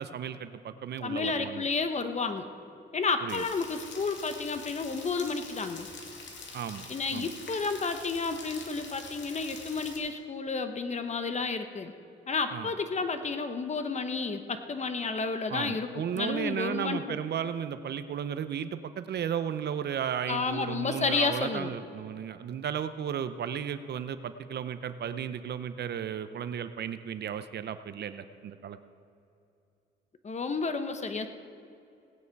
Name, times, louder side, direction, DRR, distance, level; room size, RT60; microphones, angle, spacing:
voice 1, 0.0-1.7 3.2-3.4 6.5-6.9 7.1-7.3 12.5-12.7 15.5-28.8, right 8 dB, 55° right, 12 dB, 0.7 m, -34 dB
voice 2, 1.0-2.5 2.9-5.9 6.9-11.9 12.3-17.2 20.3-21.7 30.2-31.3, left 4 dB, 35° left, 8 dB, 1.1 m, -31 dB
Rain, 3.3-10.0, left 4 dB, 65° left, 2.3 m, -45 dB
17.5 x 9.6 x 4.7 m, 2.7 s
cardioid pair, 90°, 20 cm